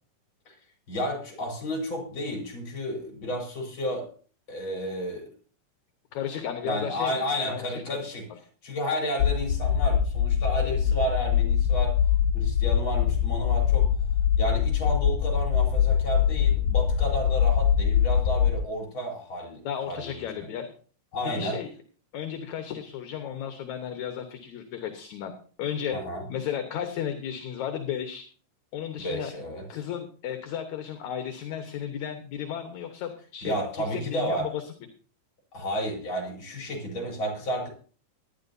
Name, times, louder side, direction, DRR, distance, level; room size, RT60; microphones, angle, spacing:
voice 1, 0.9-4.1 4.5-5.3 6.6-8.2 8.6-11.9 12.3-13.9 14.4-20.5 21.1-21.6 25.9-26.2 29.0-29.6 33.4-34.5 35.5-37.7, equal, 35° left, 0 dB, 4.9 m, -32 dB
voice 2, 6.1-7.6 7.9-8.1 19.6-20.7 21.2-21.7 22.1-25.3 25.6-26.0 26.3-28.3 28.7-29.3 29.7-34.6, left 9 dB, 65° left, 6 dB, 2.4 m, -34 dB
sound 1, 9.2-18.6, left 8 dB, 85° left, 2.4 m, -23 dB
19.0 x 11.5 x 2.7 m, 0.42 s
omnidirectional pair, 3.8 m